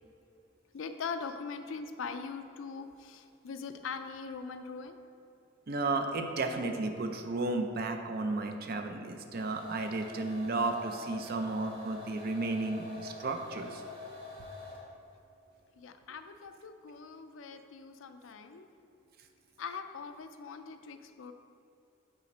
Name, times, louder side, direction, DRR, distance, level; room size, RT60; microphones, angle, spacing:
voice 1, 0.7-5.0 15.8-18.7 19.6-21.3, left 5 dB, 70° left, 8 dB, 0.4 m, -41 dB
voice 2, 5.7-13.8, right 3 dB, 45° right, 6 dB, 0.5 m, -33 dB
sound 1, 9.3-15.0, left 3 dB, 25° right, 1.2 m, -46 dB
5.6 x 4.0 x 5.3 m, 2.8 s
head